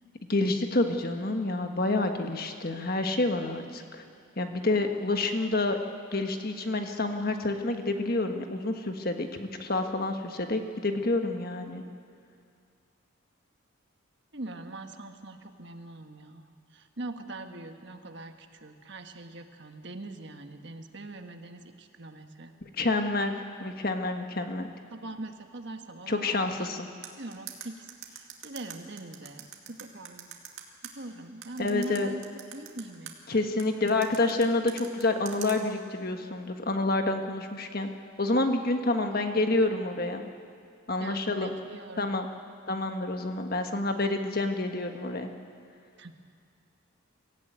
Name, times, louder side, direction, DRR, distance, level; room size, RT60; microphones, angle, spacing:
voice 1, 0.3-4.0 4.4-5.8 6.1-11.8 22.8-23.3 23.6-24.7 26.1-26.9 31.6-32.1 33.3-37.9 38.2-40.3 40.9-41.5 42.0-42.3 42.7-45.3, left 2 dB, 45° left, 5 dB, 1.4 m, -28 dB
voice 2, 14.3-22.5 24.9-26.7 27.2-30.4 30.8-32.2 32.5-33.5 39.1-39.3 41.0-42.1 46.0-46.3, right 2 dB, 55° right, 6 dB, 1.4 m, -42 dB
sound 1, 27.0-30.9 31.4-33.1 33.6-35.6, right 10 dB, 70° right, 2.3 m, -42 dB
24.0 x 15.5 x 9.2 m, 2.3 s
head